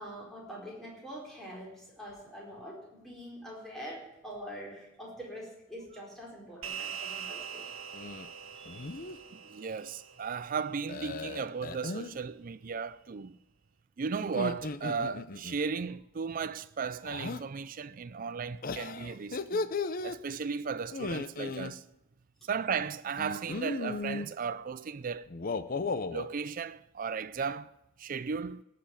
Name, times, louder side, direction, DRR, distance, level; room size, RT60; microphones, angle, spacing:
voice 1, 0.0-7.6 8.5-8.8, equal, ahead, 4.5 m, -45 dB
sound 1, 6.6-11.3, right 8 dB, 85° right, 1.5 m, -43 dB
sound 2, 7.9-8.3 8.7-9.2 10.9-12.1 14.2-15.6 17.0-17.4 18.6-20.2 20.9-21.7 23.2-24.3 25.3-26.3, left 3 dB, 45° left, 0.7 m, -36 dB
voice 2, 9.3-13.4 14.0-19.7 20.0-21.8 22.4-25.3 26.1-27.7 28.0-28.6, right 5 dB, 45° right, 0.4 m, -35 dB
18.0 x 6.7 x 8.9 m
head